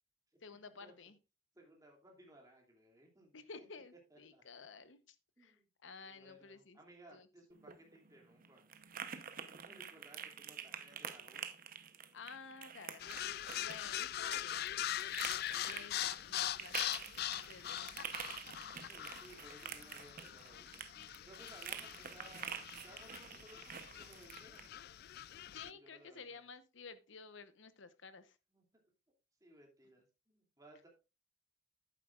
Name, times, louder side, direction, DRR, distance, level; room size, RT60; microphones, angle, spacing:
voice 1, 0.4-1.2 3.3-5.6 5.8-6.8 7.1-7.3 12.1-14.8 15.3-16.8 17.3-18.1 25.5-28.4, left 5 dB, 70° left, 0.9 m, -53 dB
voice 2, 1.5-3.6 4.1-4.4 5.4-5.7 6.0-8.7 9.5-11.4 18.7-20.8 21.2-24.7 25.7-26.5 28.5-28.6 29.4-30.9, right 1 dB, 20° right, 2.7 m, -61 dB
sound 1, 7.5-24.7, right 8 dB, 45° right, 0.8 m, -48 dB
sound 2, 13.0-25.7, left 12 dB, 55° left, 0.3 m, -42 dB
11.0 x 9.2 x 2.4 m
head